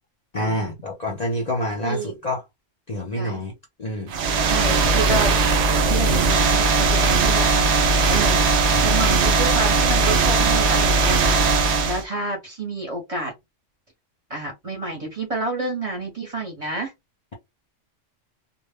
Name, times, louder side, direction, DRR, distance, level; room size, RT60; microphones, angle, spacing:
voice 1, 0.3-2.4 2.9-3.5 3.8-4.1 4.6-4.9 8.7-8.9, equal, 45° left, 0.6 m, -28 dB
voice 2, 1.8-2.1 3.1-3.4 4.4-5.3 5.9-8.4 8.8-13.3 14.3-16.9, right 3 dB, 35° right, 0.7 m, -29 dB
sound 1, 4.1-12.0, right 3 dB, 70° right, 0.8 m, -19 dB
2.1 x 2.0 x 3.4 m
omnidirectional pair, 1.3 m